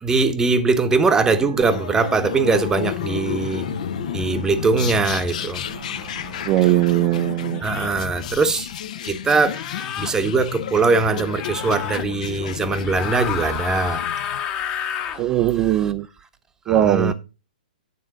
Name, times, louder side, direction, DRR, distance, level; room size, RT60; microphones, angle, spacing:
voice 1, 0.0-3.7 4.1-6.5 7.6-8.7 9.0-9.6 10.0-14.1 15.1-15.9 16.7-17.1, right 4 dB, 15° right, 1.0 m, -21 dB
sound 1, 1.2-7.0, right 4 dB, 85° right, 1.3 m, -40 dB
sound 2, 1.7-14.4, left 9 dB, 60° left, 0.8 m, -31 dB
sound 3, 6.2-6.3 7.5-8.0 9.5-10.1 11.3-12.0 12.8-15.2, left 9 dB, 30° left, 1.2 m, -30 dB
voice 2, 6.5-7.6 15.2-16.1 16.7-17.1, right 13 dB, 30° right, 0.5 m, -19 dB
9.5 x 3.8 x 6.2 m
hypercardioid pair, 130°, 4 cm